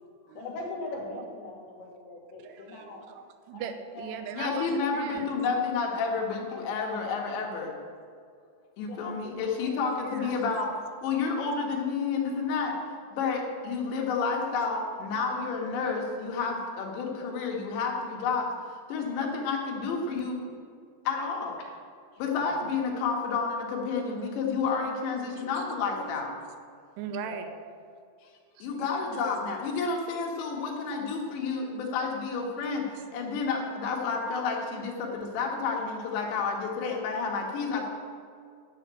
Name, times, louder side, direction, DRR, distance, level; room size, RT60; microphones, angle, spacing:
voice 1, 0.2-3.0 3.5-3.6 3.9-4.1 4.5-4.6 6.5-6.6 7.0-7.1 8.8-9.8 10.2-10.4 22.3-22.7 27.3-27.5, left 2 dB, 65° left, -2 dB, 4.1 m, -41 dB
voice 2, 2.4-5.3 9.9-10.4 25.3-25.7 25.9-26.5 26.7-27.5 28.6-28.9 29.8-29.9 33.0-33.1, right 7 dB, 80° right, 8 dB, 2.7 m, -41 dB
voice 3, 4.3-7.7 8.8-10.7 11.0-12.8 13.1-18.5 18.9-20.4 21.1-21.6 22.2-26.3 28.6-32.9 33.1-37.9, left 5 dB, 85° left, 0 dB, 3.9 m, -30 dB
11.0 x 7.0 x 8.9 m, 2.3 s
omnidirectional pair, 5.0 m